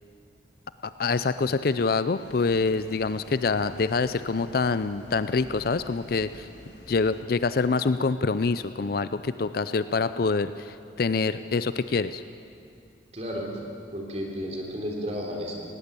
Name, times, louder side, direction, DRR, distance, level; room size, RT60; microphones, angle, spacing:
voice 1, 1.0-6.5 6.9-12.2, left 4 dB, 50° left, 13 dB, 0.5 m, -26 dB
sound 1, 2.2-7.2, left 1 dB, 70° left, 2.7 m, -48 dB
voice 2, 13.1-13.5 13.9-15.5, equal, 35° right, 0 dB, 3.5 m, -32 dB
19.5 x 17.5 x 8.3 m, 2.6 s
head